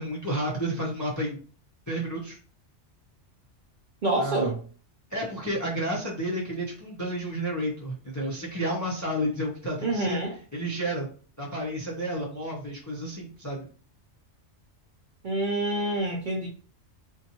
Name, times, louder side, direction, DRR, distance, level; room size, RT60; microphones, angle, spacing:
voice 1, 0.0-1.4 1.9-2.4 4.2-4.5 5.1-10.2 10.5-11.1 11.4-13.7, equal, 20° left, -4 dB, 0.5 m, -31 dB
voice 2, 4.0-4.6 9.8-10.3 15.2-16.5, right 2 dB, 55° right, -1 dB, 0.6 m, -27 dB
2.6 x 2.2 x 2.8 m, 0.41 s
omnidirectional pair, 1.2 m